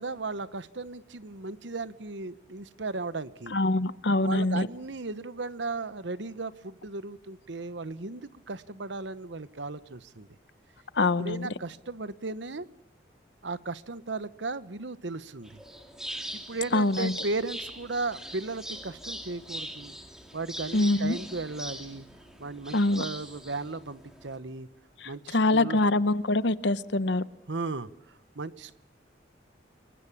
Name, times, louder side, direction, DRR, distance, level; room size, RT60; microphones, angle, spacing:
voice 1, 0.0-3.5 4.2-10.3 11.2-12.7 13.4-15.6 16.3-19.9 20.3-22.1 22.4-24.7 25.0-25.8 27.5-28.8, right 3 dB, 75° right, 15 dB, 1.0 m, -36 dB
voice 2, 3.5-4.7 10.9-11.5 16.7-17.1 20.7-21.2 22.7-23.0 25.0-27.2, left 2 dB, 70° left, 15 dB, 1.0 m, -24 dB
sound 1, 15.4-24.4, equal, 5° right, 2.4 m, -41 dB
29.0 x 22.5 x 7.3 m, 0.76 s
head